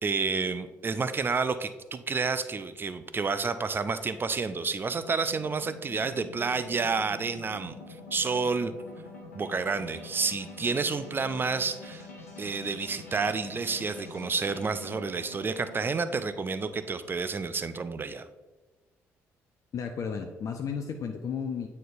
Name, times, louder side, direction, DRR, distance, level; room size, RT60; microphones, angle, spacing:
voice 1, 0.0-7.7 8.1-8.7 9.3-12.0 12.4-18.3, right 4 dB, 25° right, 11 dB, 0.4 m, -30 dB
sound 1, 4.6-17.3, left 3 dB, 85° left, 1.0 m, -47 dB
voice 2, 19.7-21.7, left 6 dB, 45° left, 4 dB, 0.5 m, -33 dB
9.0 x 4.2 x 2.5 m, 1.2 s
figure-of-eight pair, 45°, 8 cm